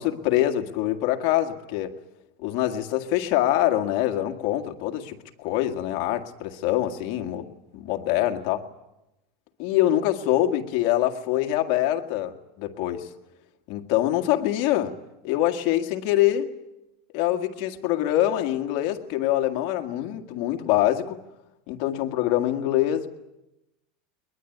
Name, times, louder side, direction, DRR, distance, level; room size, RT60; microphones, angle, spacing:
voice 1, 0.0-2.0 2.4-8.6 9.6-13.1 13.7-15.0 15.2-16.5 17.1-21.2 21.7-23.1, left 13 dB, 45° left, 1.9 m, -24 dB
22.0 x 21.0 x 9.4 m
supercardioid pair, 170°, 0 cm